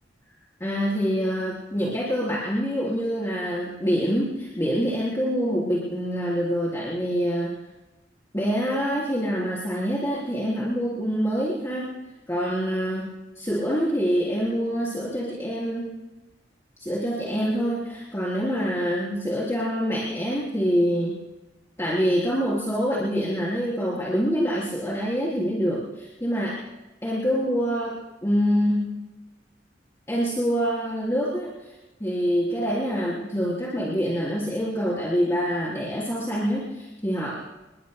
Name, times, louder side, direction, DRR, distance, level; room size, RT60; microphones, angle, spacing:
voice 1, 0.6-7.6 8.3-11.9 12.3-15.9 16.8-21.1 21.8-26.6 27.0-29.0 30.1-37.4, equal, 15° left, -6 dB, 3.7 m, -26 dB
28.0 x 21.5 x 2.2 m, 1.0 s
head